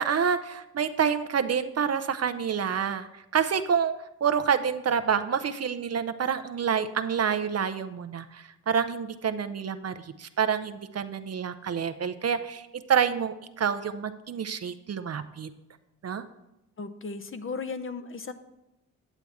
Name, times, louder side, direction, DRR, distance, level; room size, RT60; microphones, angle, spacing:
voice 1, 0.0-3.1 3.3-3.9 4.2-15.5 16.0-16.2, right 7 dB, 40° right, 11 dB, 0.6 m, -28 dB
voice 2, 16.8-18.3, left 4 dB, 35° left, 9 dB, 0.7 m, -35 dB
9.1 x 8.0 x 3.5 m, 0.93 s
hypercardioid pair, 45°, 39 cm